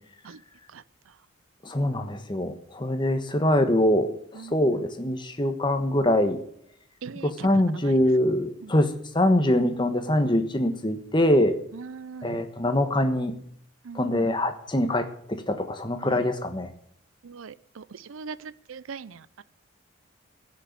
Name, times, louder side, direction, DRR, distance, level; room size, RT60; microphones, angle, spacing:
voice 1, 1.6-4.1 4.5-6.4 7.2-11.6 12.2-13.3 13.9-16.7, left 1 dB, 20° left, 8 dB, 1.2 m, -23 dB
voice 2, 4.4-4.8 7.0-8.0 8.6-8.7 11.7-12.4 13.8-14.3 16.1-16.2 17.2-19.4, right 5 dB, 75° right, 18 dB, 0.5 m, -41 dB
15.5 x 6.5 x 9.4 m, 0.65 s
head